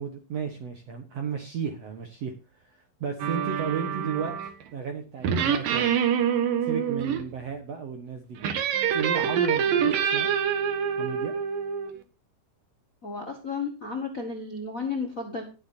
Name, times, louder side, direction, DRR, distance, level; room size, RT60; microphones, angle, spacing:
voice 1, 0.0-2.3 2.6-4.4 4.7-5.9 6.6-8.4 8.9-10.3 11.0-11.3, right 6 dB, 60° right, 4 dB, 2.1 m, -33 dB
sound 1, 3.2-4.6 5.2-7.2 8.4-11.9, right 8 dB, 80° right, 3.2 m, -26 dB
voice 2, 13.0-15.4, left 4 dB, 35° left, 2 dB, 1.5 m, -33 dB
20.0 x 8.0 x 2.7 m, 0.32 s
omnidirectional pair, 3.9 m